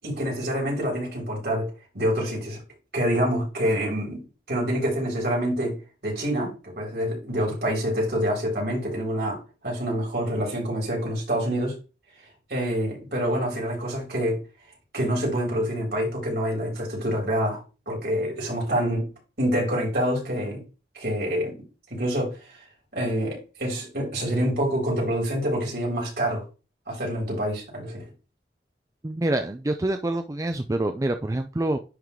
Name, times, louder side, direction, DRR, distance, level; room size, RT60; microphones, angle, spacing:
voice 1, 0.0-2.6 2.9-5.8 6.0-11.7 12.5-14.4 14.9-19.1 19.4-20.6 20.9-21.6 21.9-22.3 22.9-26.4 26.9-28.0, equal, 60° right, 3.9 m, -26 dB
voice 2, 29.0-31.8, right 1 dB, 20° right, 0.4 m, -26 dB
10.5 x 3.7 x 3.2 m
head